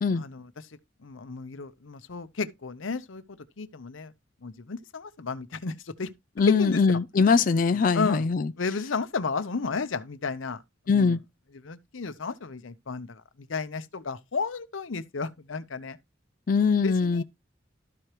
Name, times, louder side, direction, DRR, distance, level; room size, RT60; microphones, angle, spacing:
voice 1, 0.2-4.1 4.4-6.1 6.6-6.8 7.7-8.2 8.6-11.2 11.6-16.0 16.8-17.2, left 4 dB, 90° left, 0.8 m, -33 dB
voice 2, 6.4-8.5 10.9-11.2 16.5-17.2, left 5 dB, 45° left, 0.4 m, -22 dB
13.0 x 4.9 x 3.0 m
head